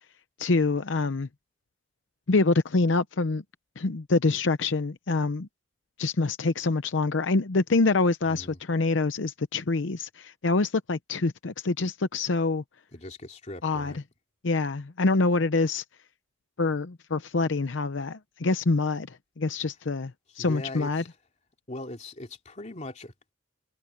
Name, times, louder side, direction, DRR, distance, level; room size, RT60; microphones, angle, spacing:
voice 1, 0.4-1.3 2.3-3.4 3.8-5.5 6.0-12.6 13.6-13.9 14.4-15.8 16.6-21.0, left 3 dB, 75° left, 0.7 m, -26 dB
voice 2, 8.3-8.6 12.9-14.0 20.3-21.1 21.7-23.3, left 2 dB, 40° left, 2.9 m, -40 dB
head